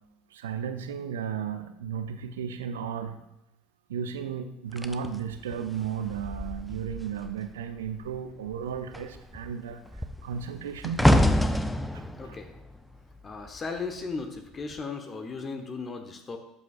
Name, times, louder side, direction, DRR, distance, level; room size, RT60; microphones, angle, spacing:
voice 1, 0.3-3.2 3.9-9.9 10.2-11.1 11.9-12.4, right 7 dB, 70° right, 8 dB, 0.6 m, -34 dB
sound 1, 4.8-7.5 7.8-8.1 8.5-13.8 14.5-14.8, equal, 5° left, 0.6 m, -27 dB
voice 2, 12.2-12.5 13.2-16.4, left 4 dB, 30° left, 6 dB, 1.0 m, -36 dB
12.0 x 8.3 x 2.5 m, 0.84 s
figure-of-eight pair, 65°, 0 cm